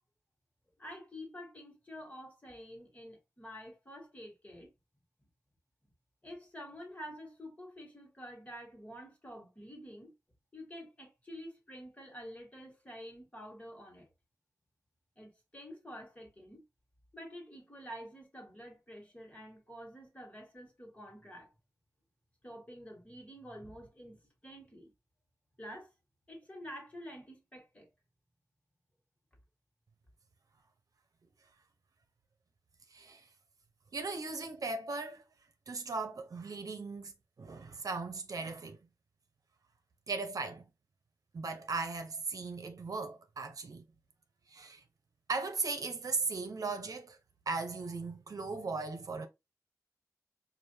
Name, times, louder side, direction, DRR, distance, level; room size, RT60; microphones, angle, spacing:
voice 1, 0.8-4.7 6.2-10.1 10.5-14.1 15.2-16.6 17.1-21.5 22.4-24.9 25.6-25.9 26.3-27.9, equal, 25° left, 1.7 m, -48 dB
voice 2, 32.9-33.2 33.9-35.2 35.7-37.1 37.4-38.8 40.1-40.6 41.3-43.8 44.5-44.8 45.3-47.2 47.5-49.3, right 4 dB, 75° right, 0.8 m, -37 dB
4.9 x 2.6 x 2.7 m
wide cardioid pair, 75°, 6 cm